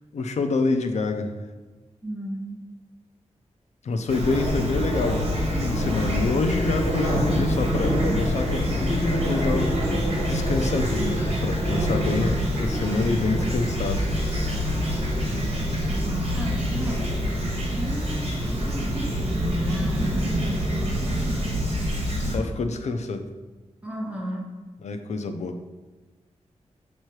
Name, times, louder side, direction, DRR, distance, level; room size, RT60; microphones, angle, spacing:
voice 1, 0.1-1.4 3.8-9.8 10.3-14.1 22.2-23.3 24.8-25.6, left 3 dB, 75° left, 7 dB, 0.6 m, -27 dB
voice 2, 2.0-2.6 16.3-17.2 17.7-21.2 23.8-24.5, equal, 10° right, -2 dB, 0.9 m, -33 dB
Fowl / Chirp tweet, 4.1-22.4, equal, 55° right, 1.5 m, -25 dB
7.4 x 3.1 x 4.7 m, 1.3 s
wide cardioid pair, 175°, 12 cm